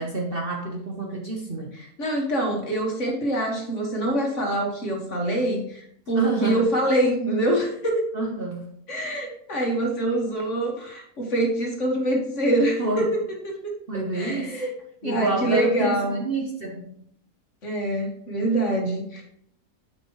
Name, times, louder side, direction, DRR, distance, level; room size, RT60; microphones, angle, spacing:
voice 1, 0.0-1.7 6.2-6.6 8.1-8.7 12.8-13.1 13.9-14.6 15.0-17.0, right 2 dB, 45° right, 1 dB, 1.0 m, -28 dB
voice 2, 1.7-8.0 8.9-13.7 14.1-14.7 15.0-16.2 17.6-19.2, right 1 dB, 50° left, 0 dB, 2.0 m, -25 dB
9.7 x 5.9 x 3.1 m, 0.68 s
omnidirectional pair, 1.7 m